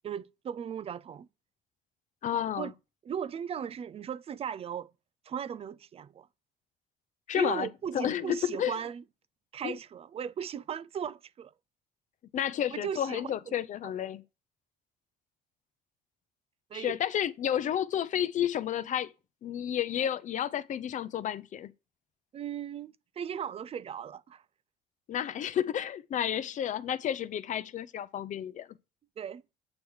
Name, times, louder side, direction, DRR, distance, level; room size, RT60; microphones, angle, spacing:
voice 1, 0.0-1.3 2.6-2.7 3.0-4.9 5.3-6.3 7.3-9.0 9.5-11.5 12.7-13.6 16.7-17.0 22.3-24.4 29.2-29.4, right 8 dB, 35° right, 0.4 m, -37 dB
voice 2, 2.2-2.7 7.3-7.7 7.9-8.8 9.6-9.7 12.3-14.2 16.7-19.1 19.4-21.7 25.1-28.7, left 10 dB, 45° left, 0.5 m, -31 dB
8.3 x 3.2 x 6.4 m
cardioid pair, 110°, 17 cm